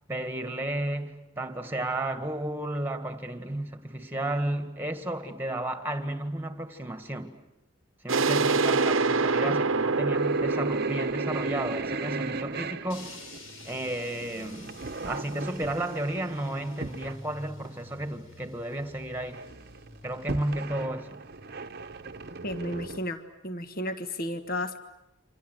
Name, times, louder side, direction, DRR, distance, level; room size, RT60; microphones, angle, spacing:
voice 1, 0.1-7.4 8.0-13.2 13.7-14.8 15.1-19.4 20.0-21.2, right 1 dB, 10° right, 1.8 m, -33 dB
sound 1, 8.1-13.6, right 4 dB, 75° right, 1.0 m, -27 dB
sound 2, 9.6-17.2 17.6-17.7 18.1-18.2 18.4-18.9 19.2-23.0, right 3 dB, 50° right, 1.0 m, -38 dB
sound 3, 12.9-23.1, left 2 dB, 80° left, 5.2 m, -50 dB
voice 2, 22.4-24.8, left 1 dB, 45° left, 1.5 m, -33 dB
28.5 x 26.0 x 8.0 m
head